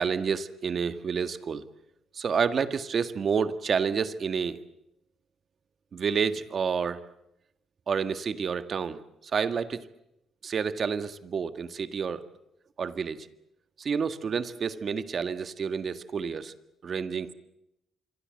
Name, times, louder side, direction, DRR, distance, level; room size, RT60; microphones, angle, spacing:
voice 1, 0.0-1.6 2.1-4.6 5.9-7.0 7.9-9.8 10.4-12.2 12.8-13.3 13.8-16.5 16.8-17.3, right 6 dB, 50° right, 10 dB, 1.7 m, -29 dB
26.5 x 24.0 x 7.8 m, 0.86 s
cardioid pair, 90°, 0 cm